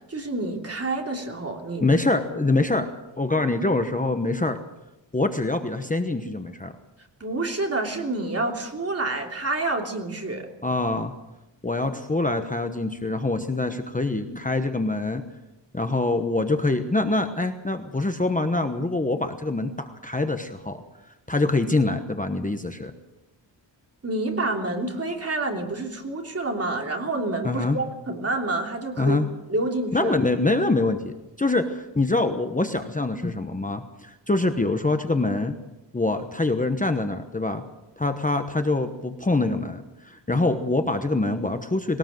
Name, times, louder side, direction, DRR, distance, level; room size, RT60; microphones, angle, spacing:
voice 1, 0.1-2.0 7.2-10.5 24.0-29.2 29.5-30.2, right 2 dB, 35° right, 2 dB, 3.2 m, -28 dB
voice 2, 1.8-2.9 3.2-4.6 5.1-6.7 10.6-11.1 11.6-15.2 15.7-20.8 21.3-22.9 27.4-27.8 29.0-29.3 29.9-35.5 35.9-37.6 38.0-42.0, left 2 dB, 20° left, 6 dB, 1.1 m, -24 dB
20.5 x 18.5 x 7.7 m, 0.99 s
wide cardioid pair, 150°, 44 cm